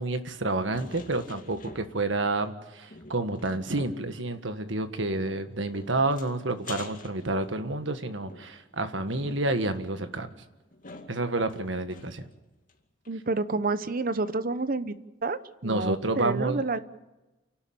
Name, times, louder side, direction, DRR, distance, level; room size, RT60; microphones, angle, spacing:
voice 1, 0.0-10.3 11.1-12.2 15.6-16.6, right 2 dB, 75° right, 9 dB, 1.7 m, -29 dB
sound 1, 0.7-2.2 2.5-2.6 2.9-4.1 5.1-7.8 8.3-12.3 12.7-12.8 13.0-13.1, left 3 dB, 45° left, 2.5 m, -47 dB
voice 2, 13.1-14.9 15.2-16.8, right 3 dB, 50° right, 13 dB, 1.0 m, -29 dB
29.0 x 12.0 x 8.8 m, 1.1 s
head